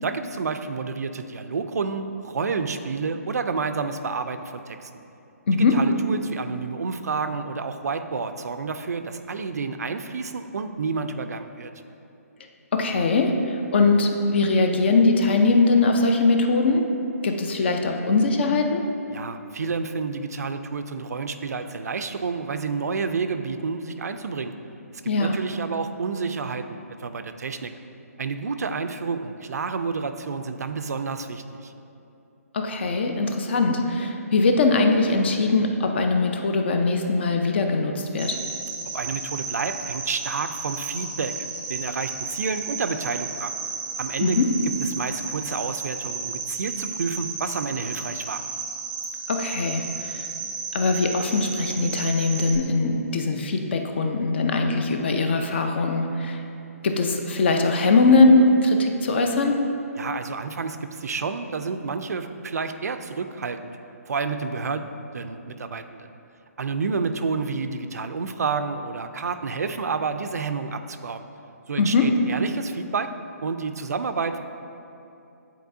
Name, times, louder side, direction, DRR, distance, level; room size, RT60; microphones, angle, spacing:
voice 1, 0.0-4.9 5.5-11.7 19.1-24.5 25.2-27.7 28.2-31.7 38.9-43.5 44.0-44.4 44.8-48.4 60.0-63.7 64.1-66.1 66.6-71.3 71.7-73.1 73.4-74.4, right 4 dB, 85° right, 8 dB, 0.4 m, -29 dB
voice 2, 5.5-5.8 12.7-16.9 17.2-18.8 25.1-25.4 32.5-38.4 44.2-44.5 49.3-50.3 50.7-56.4 56.8-59.6 71.8-72.1, left 3 dB, 45° left, 4 dB, 0.5 m, -21 dB
Cricket, 38.2-52.6, right 5 dB, 15° right, 0.6 m, -33 dB
9.2 x 4.2 x 2.7 m, 2.8 s
hypercardioid pair, 165°, 9 cm